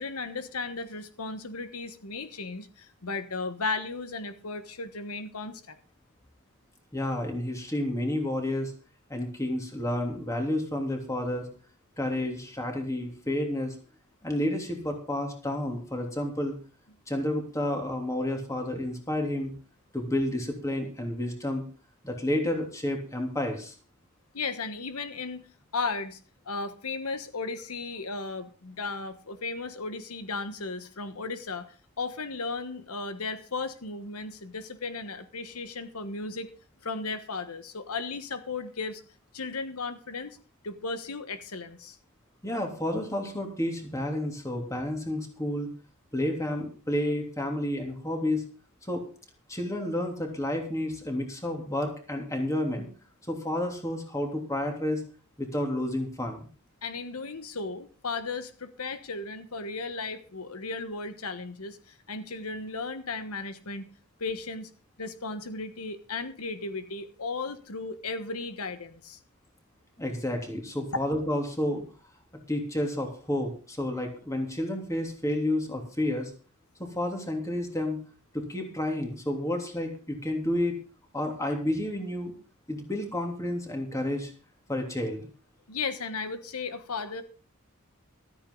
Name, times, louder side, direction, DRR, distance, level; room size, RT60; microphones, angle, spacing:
voice 1, 0.0-5.8 24.3-25.4 25.7-26.2 26.4-36.5 36.8-39.0 39.3-40.4 40.6-42.0 56.8-63.9 64.2-64.7 65.0-69.2 85.7-87.2, left 3 dB, 85° left, 10 dB, 1.3 m, -35 dB
voice 2, 6.9-8.7 9.1-11.5 12.0-13.8 14.2-16.5 17.1-19.5 19.9-21.6 22.0-23.7 42.4-45.7 46.1-48.4 48.9-49.0 49.5-52.9 53.3-55.0 55.4-56.4 70.0-71.8 72.5-76.3 76.8-78.0 78.3-80.8 81.1-82.3 82.7-84.3 84.7-85.3, left 1 dB, 15° left, 2 dB, 3.1 m, -30 dB
14.5 x 13.5 x 3.9 m, 0.38 s
head